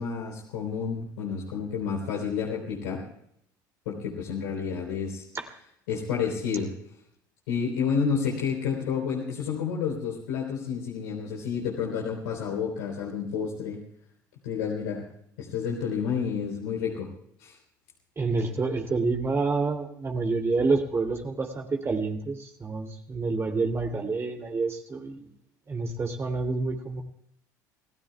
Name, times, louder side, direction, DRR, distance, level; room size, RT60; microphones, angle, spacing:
voice 1, 0.0-3.0 3.9-5.2 5.9-6.7 7.5-13.8 14.4-15.0 15.4-17.1 17.4-17.6, left 6 dB, 70° left, -3 dB, 3.7 m, -30 dB
voice 2, 18.2-25.3 25.7-27.0, right 3 dB, 25° right, 3 dB, 2.6 m, -28 dB
29.5 x 17.5 x 2.3 m, 0.71 s
figure-of-eight pair, 65°, 10 cm